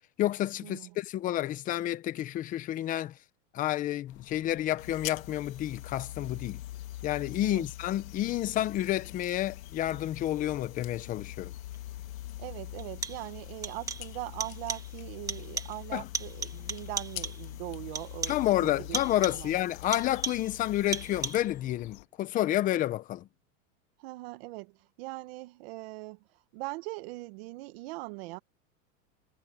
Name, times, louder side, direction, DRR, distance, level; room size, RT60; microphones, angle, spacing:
voice 1, 0.2-3.2 3.5-6.6 7.0-11.5 15.9-16.1 18.3-23.3, left 13 dB, 20° left, 0.8 m, -30 dB
sound 1, 4.1-22.1, left 21 dB, 55° left, 2.0 m, -53 dB
sound 2, 4.8-21.4, left 14 dB, 80° left, 1.8 m, -44 dB
sound 3, 11.7-11.8 12.8-13.4 13.6-14.2 14.4-15.0 15.3-15.9 16.1-17.5 18.0-18.5 18.9-19.5 19.9-20.6 20.9-21.6, right 5 dB, 10° right, 1.4 m, -37 dB
voice 2, 12.4-19.5 24.0-26.2 26.5-28.4, right 22 dB, 50° right, 1.5 m, -41 dB
supercardioid pair, 155°, 39 cm